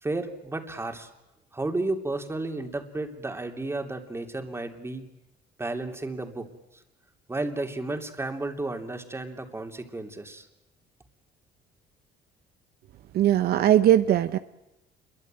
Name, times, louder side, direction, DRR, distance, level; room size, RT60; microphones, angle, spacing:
voice 1, 0.0-1.1 1.5-5.0 5.6-6.5 7.3-10.5, right 2 dB, 15° right, 5 dB, 3.0 m, -32 dB
voice 2, 13.1-14.4, right 11 dB, 70° right, 11 dB, 0.9 m, -20 dB
27.5 x 23.0 x 9.0 m, 0.92 s
cardioid pair, 110°, 17 cm